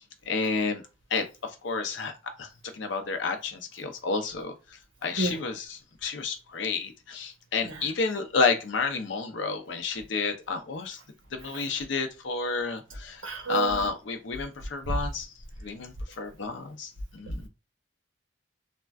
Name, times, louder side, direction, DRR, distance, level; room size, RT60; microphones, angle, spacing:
voice 1, 0.3-0.8 1.1-1.2 1.6-2.1 2.4-2.5 2.7-4.5 5.0-11.0 11.3-13.2 13.5-15.3 15.6-17.5, left 4 dB, 65° left, 0.5 m, -30 dB
voice 2, 13.2-13.8, right 4 dB, 75° right, 0.8 m, -29 dB
3.3 x 2.2 x 2.3 m
head